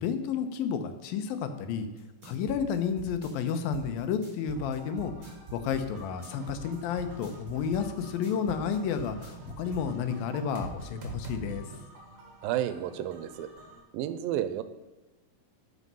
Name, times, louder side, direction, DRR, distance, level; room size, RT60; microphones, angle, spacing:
voice 1, 0.0-1.9 2.2-11.6, left 7 dB, 80° left, 9 dB, 2.7 m, -31 dB
sound 1, 2.0-9.9, right 5 dB, 25° right, 4.0 m, -44 dB
sound 2, 4.6-13.8, right 2 dB, 55° right, 2.8 m, -46 dB
voice 2, 12.4-13.5 13.9-14.6, right 11 dB, 85° right, 12 dB, 2.4 m, -31 dB
12.5 x 5.7 x 5.5 m, 1.2 s
omnidirectional pair, 4.2 m